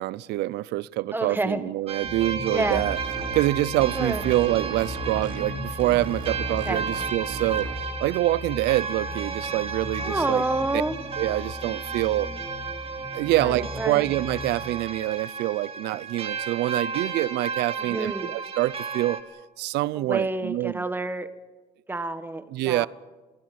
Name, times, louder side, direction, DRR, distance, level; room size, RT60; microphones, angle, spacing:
voice 1, 0.0-3.0 3.3-7.7 8.0-10.4 10.7-10.8 11.2-12.3 13.1-19.2 19.6-20.8 22.5-22.9, right 17 dB, 80° right, 0.6 m, -26 dB
voice 2, 1.1-1.6 2.5-2.8 3.9-4.2 6.6-6.8 10.0-11.0 13.4-14.1 17.8-18.3 19.9-21.3 21.9-22.9, right 2 dB, 10° right, 1.5 m, -28 dB
sound 1, 1.9-19.2, right 5 dB, 35° right, 2.7 m, -34 dB
sound 2, 2.0-14.7, left 4 dB, 25° left, 1.9 m, -39 dB
sound 3, 2.7-3.4 3.8-5.5 5.8-7.8, right 3 dB, 55° right, 4.1 m, -37 dB
22.5 x 16.0 x 9.4 m
cardioid pair, 110°, 17 cm